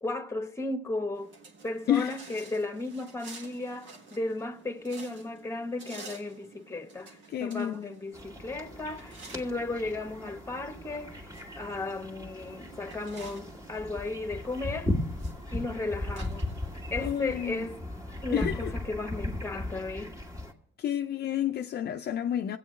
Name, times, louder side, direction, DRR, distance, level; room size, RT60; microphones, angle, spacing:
voice 1, 0.0-1.4 1.6-11.3 11.6-14.9 15.5-16.5 16.9-17.8 18.2-20.2, left 2 dB, 15° left, 1.1 m, -35 dB
sound 1, 1.1-17.8, right 3 dB, 75° right, 1.9 m, -51 dB
voice 2, 7.3-7.9 17.0-17.7 18.3-18.7 20.8-22.6, left 10 dB, 55° left, 0.5 m, -30 dB
sound 2, 8.1-20.5, left 1 dB, 15° right, 1.7 m, -37 dB
25.0 x 8.4 x 3.2 m
cardioid pair, 90°, 20 cm